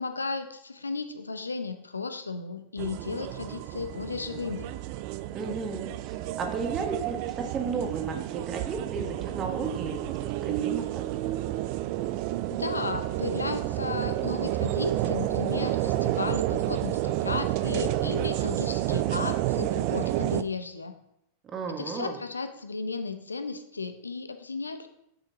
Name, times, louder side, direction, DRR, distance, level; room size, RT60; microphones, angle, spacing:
voice 1, 0.0-4.7 12.5-20.9 21.8-24.9, left 4 dB, 75° left, 9 dB, 0.6 m, -34 dB
sound 1, 2.8-20.4, right 14 dB, 45° right, 0.4 m, -30 dB
voice 2, 5.3-11.0 21.5-22.2, right 4 dB, 25° right, 4 dB, 1.2 m, -34 dB
9.3 x 5.8 x 2.7 m, 0.79 s
figure-of-eight pair, 90°, 0 cm